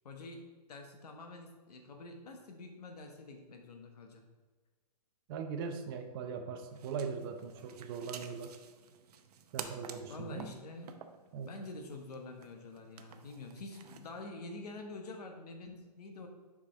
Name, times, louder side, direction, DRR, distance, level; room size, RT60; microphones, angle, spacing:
voice 1, 0.0-4.2 10.1-10.9 11.4-16.3, left 2 dB, 75° left, 4 dB, 1.3 m, -47 dB
voice 2, 5.3-8.6 9.5-10.5 11.3-11.5, right 6 dB, 35° right, 6 dB, 0.6 m, -40 dB
sound 1, 6.6-14.2, right 7 dB, 75° right, 0.7 m, -51 dB
7.2 x 5.2 x 3.4 m, 1.4 s
hypercardioid pair, 150°, 20 cm